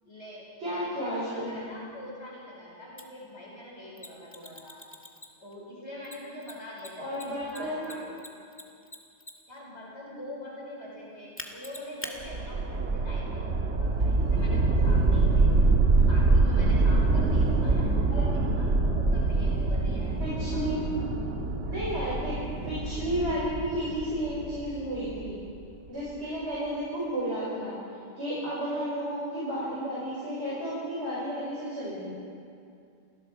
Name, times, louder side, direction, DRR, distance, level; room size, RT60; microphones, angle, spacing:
voice 1, 0.0-4.8 5.4-8.2 9.5-15.7 16.1-20.6, left 1 dB, 75° left, -5 dB, 5.9 m, -44 dB
voice 2, 0.6-1.6 7.0-7.9 18.1-18.3 20.2-20.8 21.7-22.3 22.6-25.4 25.9-27.8 28.2-32.1, equal, 70° right, -8 dB, 5.4 m, -32 dB
Mechanisms, 3.0-3.1 4.0-5.5 6.0-9.6 11.4-12.1, left 1 dB, 10° left, 1.8 m, -43 dB
sound 1, 12.2-25.3, right 3 dB, 90° right, 1.8 m, -25 dB
28.5 x 20.0 x 4.7 m, 2.5 s
omnidirectional pair, 1.2 m